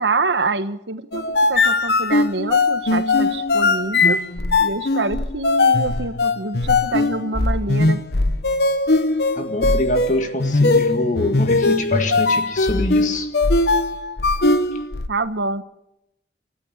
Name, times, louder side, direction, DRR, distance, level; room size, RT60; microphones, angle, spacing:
voice 1, 0.0-4.2 4.6-8.0 15.1-15.6, right 3 dB, 90° right, 11 dB, 1.3 m, -26 dB
sound 1, 1.1-15.1, left 3 dB, 70° left, 1.1 m, -20 dB
voice 2, 9.3-13.3, left 2 dB, 45° left, 6 dB, 1.9 m, -24 dB
29.0 x 14.0 x 7.4 m, 0.83 s
head